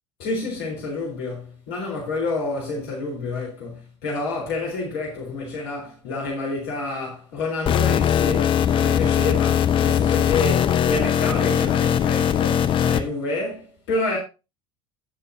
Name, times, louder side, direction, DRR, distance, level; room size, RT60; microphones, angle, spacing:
voice 1, 0.2-14.2, left 3 dB, 60° left, 4.2 m, -29 dB
sound 1, 7.7-13.0, left 9 dB, 35° left, 1.0 m, -20 dB
18.0 x 6.8 x 2.8 m
figure-of-eight pair, 70°, 15 cm